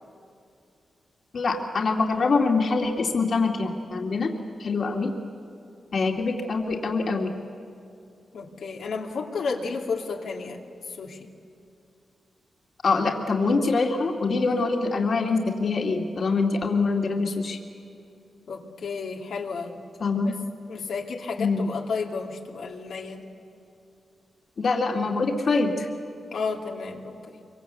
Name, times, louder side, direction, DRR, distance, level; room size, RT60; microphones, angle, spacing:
voice 1, 1.3-4.3 4.6-5.1 5.9-7.4 12.8-17.6 20.0-20.3 21.4-21.6 24.6-25.9, left 4 dB, 50° left, 1 dB, 2.3 m, -24 dB
voice 2, 8.3-10.6 11.0-11.3 18.5-19.8 20.7-23.3 26.3-27.2, left 4 dB, 85° left, 0 dB, 2.6 m, -32 dB
25.5 x 24.0 x 8.2 m, 2.5 s
wide cardioid pair, 135°, 0 cm